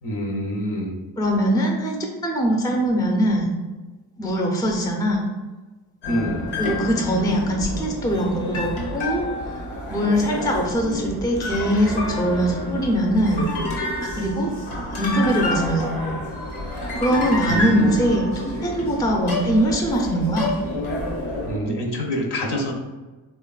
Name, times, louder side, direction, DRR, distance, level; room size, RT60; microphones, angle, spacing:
voice 1, 0.0-1.0 6.1-6.5 17.4-17.9 21.5-22.7, equal, 55° left, 1 dB, 0.7 m, -26 dB
voice 2, 1.2-3.5 4.2-5.3 6.6-9.2 9.9-13.5 14.0-14.5 15.0-16.2 17.0-20.6, equal, 10° left, 0 dB, 0.5 m, -22 dB
sound 1, 6.0-21.6, left 1 dB, 80° left, 0.9 m, -29 dB
3.1 x 2.2 x 2.3 m, 1.2 s
supercardioid pair, 55°, 48 cm